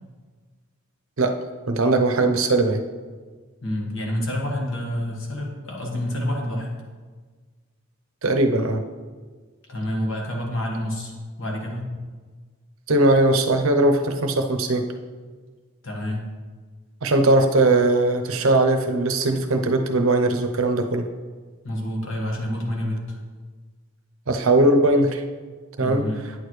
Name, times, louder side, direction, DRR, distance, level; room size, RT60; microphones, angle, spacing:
voice 1, 1.7-2.8 8.2-8.8 12.9-14.8 17.0-21.0 24.3-25.2 25.8-26.0, right 2 dB, 65° right, 5 dB, 0.7 m, -19 dB
voice 2, 3.6-6.7 9.7-11.1 11.4-11.9 15.8-16.2 21.6-23.2 25.8-26.2, left 1 dB, 60° left, 0 dB, 1.5 m, -28 dB
9.3 x 6.7 x 3.2 m, 1.5 s
head